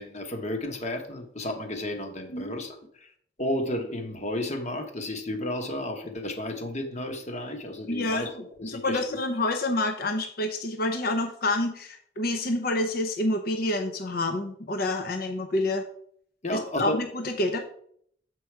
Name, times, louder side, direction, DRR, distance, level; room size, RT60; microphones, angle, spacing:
voice 1, 0.0-2.8 3.4-9.0 16.4-17.0, left 1 dB, 35° left, 4 dB, 1.1 m, -32 dB
voice 2, 7.9-15.8 16.5-17.6, left 2 dB, 50° left, 5 dB, 0.7 m, -28 dB
7.6 x 4.7 x 4.6 m, 0.64 s
head